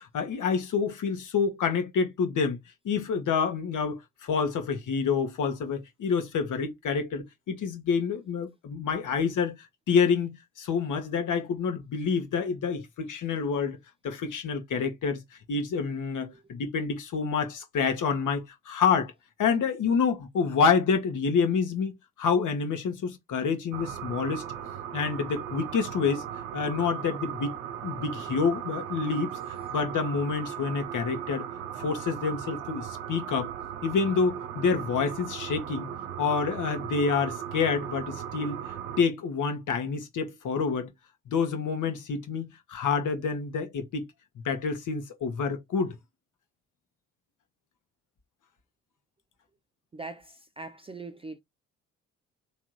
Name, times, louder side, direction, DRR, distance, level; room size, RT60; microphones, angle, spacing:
voice 1, 0.0-2.6 2.8-13.8 14.0-15.2 15.5-19.1 19.4-24.4 24.9-26.2 26.5-27.5 27.8-29.4 29.7-31.5 31.8-33.5 33.8-35.9 36.2-38.6 39.0-40.9 41.3-44.1 44.4-45.9, left 5 dB, 50° left, 1.2 m, -28 dB
sound 1, 23.7-39.0, right 9 dB, 85° right, 0.7 m, -37 dB
voice 2, 49.9-51.4, right 3 dB, 15° right, 0.4 m, -41 dB
3.6 x 3.1 x 3.1 m
hypercardioid pair, 50°, 39 cm